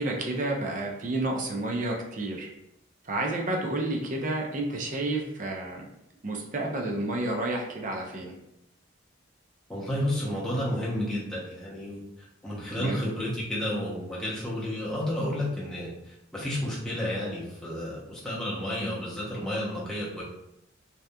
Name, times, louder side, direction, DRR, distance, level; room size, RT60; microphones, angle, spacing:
voice 1, 0.0-2.5 3.0-5.9 6.2-8.3 12.8-13.0, right 2 dB, 40° right, 0 dB, 0.4 m, -30 dB
voice 2, 9.7-20.2, left 1 dB, 5° left, -8 dB, 0.7 m, -31 dB
2.7 x 2.3 x 2.2 m, 0.82 s
head